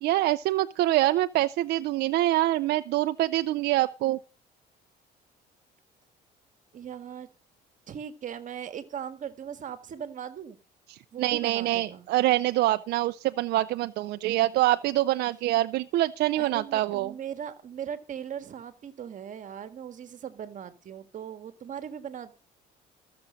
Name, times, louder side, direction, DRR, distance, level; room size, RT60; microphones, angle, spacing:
voice 1, 0.0-4.2 10.9-17.1, right 16 dB, 75° right, 0.5 m, -25 dB
voice 2, 6.7-7.3 7.9-10.6 11.1-12.1 16.4-22.3, right 8 dB, 50° right, 1.6 m, -39 dB
14.0 x 7.0 x 6.3 m
cardioid pair, 110°, 17 cm